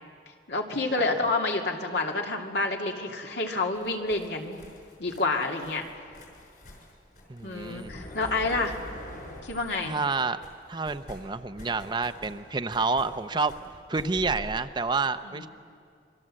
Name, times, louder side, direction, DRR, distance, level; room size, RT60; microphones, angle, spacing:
voice 1, 0.5-4.7 5.0-5.8 7.4-8.7 9.4-10.0 15.3-15.5, left 3 dB, 75° left, 2 dB, 2.5 m, -28 dB
sound 1, 3.7-10.2 10.4-14.5, left 1 dB, 55° left, 5.7 m, -46 dB
voice 2, 7.3-8.0 9.8-10.4 10.7-13.5 13.9-15.5, right 4 dB, 25° right, 10 dB, 0.6 m, -29 dB
27.0 x 23.5 x 7.6 m, 2.2 s
head